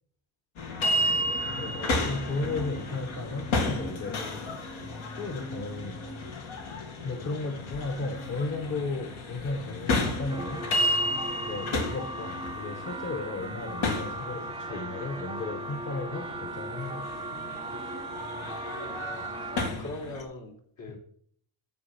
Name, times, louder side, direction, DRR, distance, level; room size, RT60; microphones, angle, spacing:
sound 1, 0.6-20.2, left 1 dB, 90° left, 2.2 m, -33 dB
voice 1, 1.5-4.6 5.2-6.0 7.0-10.6 11.4-17.6 19.8-19.9 20.9-21.0, left 3 dB, 40° left, 5 dB, 1.2 m, -35 dB
sound 2, 10.3-19.7, right 2 dB, 10° right, 0.4 m, -38 dB
voice 2, 18.7-19.5 19.8-21.0, left 2 dB, 70° left, -1 dB, 3.2 m, -42 dB
9.6 x 7.7 x 4.2 m, 0.62 s
cardioid pair, 125°, 47 cm